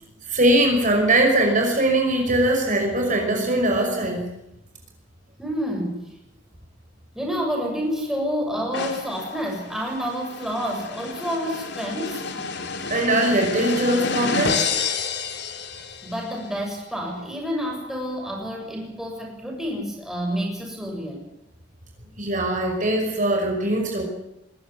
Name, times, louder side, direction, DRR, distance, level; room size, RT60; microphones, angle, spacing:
voice 1, 0.3-4.2 12.9-14.7 22.2-24.0, right 1 dB, 45° right, 2 dB, 5.7 m, -21 dB
voice 2, 5.4-6.1 7.1-12.2 16.0-21.2, equal, 5° right, 0 dB, 7.2 m, -29 dB
sound 1, 8.7-16.3, left 4 dB, 60° left, 2.9 m, -30 dB
22.5 x 16.0 x 9.7 m, 0.88 s
head